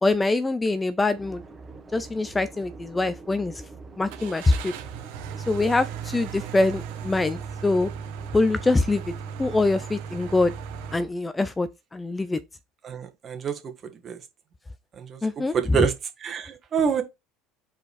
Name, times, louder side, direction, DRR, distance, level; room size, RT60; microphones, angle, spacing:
voice 1, 0.0-1.4 1.9-3.5 4.0-4.7 5.5-7.9 8.3-9.0 9.4-10.5 10.9-12.4 15.2-15.8, left 2 dB, 15° left, 0.6 m, -24 dB
sound 1, 1.1-11.1, right 3 dB, 20° right, 1.8 m, -45 dB
Car / Engine starting, 4.1-10.9, right 8 dB, 75° right, 1.5 m, -37 dB
voice 2, 12.8-13.7 14.0-14.2 15.0-15.9 16.2-17.0, right 6 dB, 35° right, 1.8 m, -27 dB
5.4 x 4.5 x 4.9 m
supercardioid pair, 100°, 0 cm